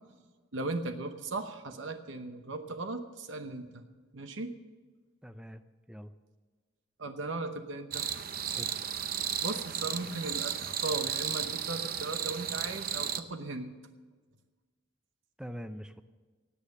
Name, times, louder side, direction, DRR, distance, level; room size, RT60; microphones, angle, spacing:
voice 1, 0.5-3.8 4.1-4.6 7.0-8.0 9.4-13.7, right 2 dB, 70° right, 7 dB, 0.9 m, -37 dB
voice 2, 5.2-5.6 5.9-6.1 8.5-8.9 15.4-16.0, equal, 5° right, 10 dB, 0.5 m, -43 dB
sound 1, 7.9-13.2, right 9 dB, 50° right, 0.7 m, -34 dB
17.0 x 8.7 x 6.6 m, 1.4 s
head